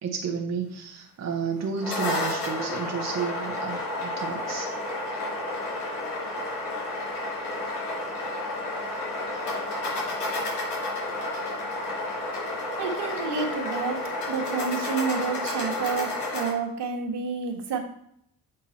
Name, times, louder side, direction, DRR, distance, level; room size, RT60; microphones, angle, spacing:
voice 1, 0.0-4.7, right 6 dB, 35° right, 2 dB, 1.0 m, -32 dB
sound 1, 1.6-16.5, left 2 dB, 85° left, 2.6 m, -31 dB
voice 2, 12.8-17.8, right 5 dB, 60° right, 2 dB, 1.6 m, -30 dB
7.6 x 3.8 x 4.3 m, 0.72 s
hypercardioid pair, 55°, 46 cm